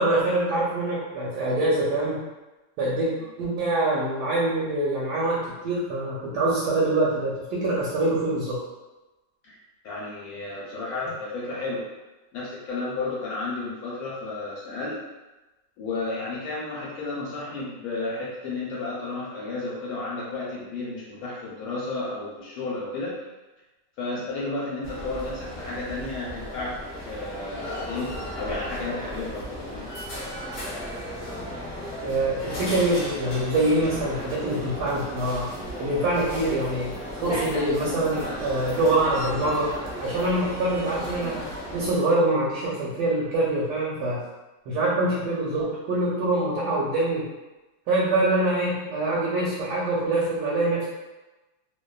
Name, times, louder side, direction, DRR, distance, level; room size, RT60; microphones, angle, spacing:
voice 1, 0.0-2.2 2.8-3.1 3.4-8.6 32.0-35.5 35.8-36.9 37.2-39.7 40.0-41.4 41.7-44.2 44.7-47.3 47.9-50.9, right 2 dB, 80° right, -5 dB, 1.1 m, -24 dB
voice 2, 9.8-11.8 12.3-15.0 15.8-23.2 24.0-29.9, left 3 dB, 70° left, -6 dB, 1.0 m, -32 dB
sound 1, 24.8-42.0, equal, 55° left, 0.6 m, -35 dB
2.7 x 2.2 x 2.2 m, 1.1 s
omnidirectional pair, 1.7 m